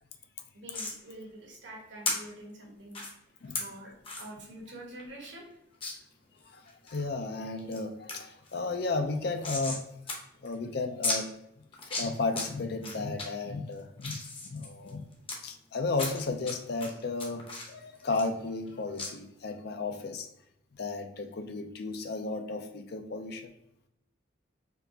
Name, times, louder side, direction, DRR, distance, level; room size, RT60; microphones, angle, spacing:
voice 1, 0.5-3.0 3.5-5.5, right 1 dB, 65° right, -1 dB, 1.1 m, -46 dB
sound 1, 0.7-1.0 2.0-2.1 2.9-3.1 3.5-3.6 4.0-4.3 4.7-4.8 5.0-5.1 5.8-5.9 6.4-7.0 7.4-7.8 8.1-8.2 8.5-9.8 10.1-10.2 10.4-10.5 11.0-11.2 11.7-12.4 12.8-13.2 13.7-15.4 15.9-16.5 16.8-18.7 19.0-19.1, left 3 dB, 30° left, 0.7 m, -34 dB
voice 2, 6.4-9.8 10.4-11.3 11.9-14.2 14.4-15.1 15.4-20.3 20.7-23.5, left 3 dB, 55° left, 6 dB, 0.4 m, -34 dB
4.4 x 2.9 x 2.7 m, 0.74 s
head